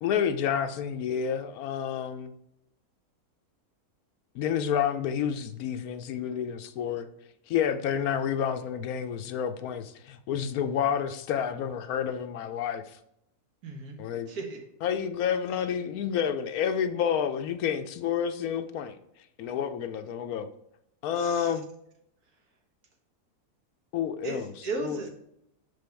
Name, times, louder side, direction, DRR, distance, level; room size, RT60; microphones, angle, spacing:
voice 1, 0.0-2.3 4.3-7.1 7.5-12.8 14.0-14.3 14.8-19.0 19.4-20.5 21.0-21.6 23.9-24.5 24.8-25.1, left 8 dB, 75° left, 9 dB, 1.0 m, -29 dB
voice 2, 13.6-14.0 14.3-14.6 21.2-21.5 24.2-25.1, right 3 dB, 70° right, 1 dB, 1.8 m, -35 dB
6.2 x 5.2 x 3.3 m, 0.78 s
omnidirectional pair, 1.6 m